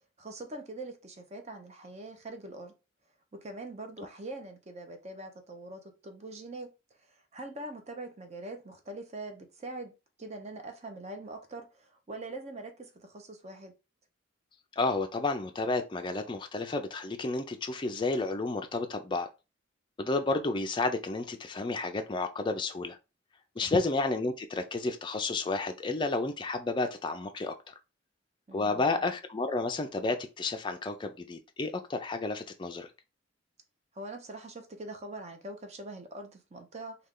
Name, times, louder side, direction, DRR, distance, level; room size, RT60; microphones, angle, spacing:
voice 1, 0.2-2.7 3.4-6.7 7.1-9.9 10.2-13.7 23.6-23.8 28.5-29.0 33.9-37.0, right 2 dB, 35° right, 0.6 m, -43 dB
voice 2, 14.8-19.3 20.0-23.0 23.6-27.7 28.5-32.9, left 3 dB, 25° left, 0.4 m, -31 dB
3.2 x 2.3 x 3.6 m
head